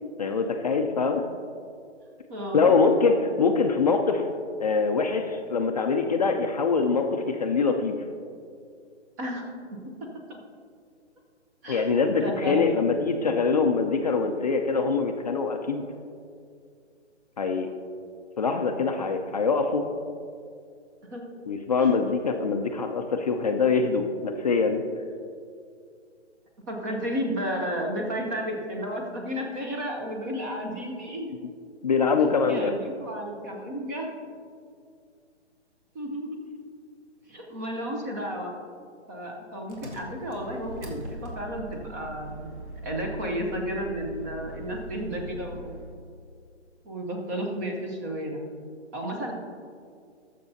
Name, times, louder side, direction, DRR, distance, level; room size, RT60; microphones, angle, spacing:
voice 1, 0.2-1.2 2.5-4.2 4.6-8.0 11.7-15.8 17.4-17.7 18.4-19.8 21.5-24.8 31.8-32.7, left 4 dB, 35° left, 4 dB, 0.5 m, -24 dB
voice 2, 2.3-2.7 9.2-9.5 10.0-10.4 11.6-11.9 12.2-12.9 21.1-21.4 21.8-21.9 26.7-31.3 32.4-34.1 35.9-36.4 37.3-38.5 39.1-42.5 42.8-45.7 46.8-48.5 48.9-49.3, equal, 15° right, 1 dB, 0.7 m, -32 dB
Engine, 39.7-46.0, right 1 dB, 70° right, 2.4 m, -41 dB
20.0 x 6.8 x 2.7 m, 2.3 s
hypercardioid pair, 150°, 36 cm